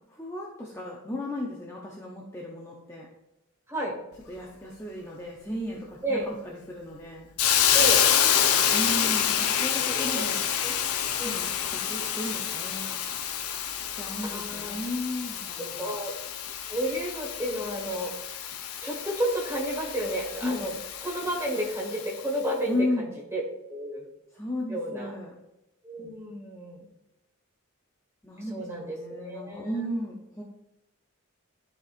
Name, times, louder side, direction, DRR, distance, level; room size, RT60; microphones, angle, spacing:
voice 1, 0.0-3.1 4.3-7.3 8.7-10.4 11.2-13.0 13.9-16.0 20.4-20.6 22.7-23.1 24.3-25.3 28.2-30.4, left 1 dB, 10° left, -3 dB, 0.6 m, -35 dB
Hiss, 7.4-22.2, left 9 dB, 90° left, 0.6 m, -28 dB
voice 2, 9.8-10.2 10.6-10.7 11.2-11.4 13.8-13.9 14.2-14.8 15.6-16.1 16.7-18.3 18.8-20.7 21.0-23.4 23.7-24.1 24.7-25.1 25.8-26.9 28.5-29.8, right 1 dB, 10° right, -2 dB, 1.5 m, -32 dB
12.5 x 4.3 x 2.5 m, 0.92 s
head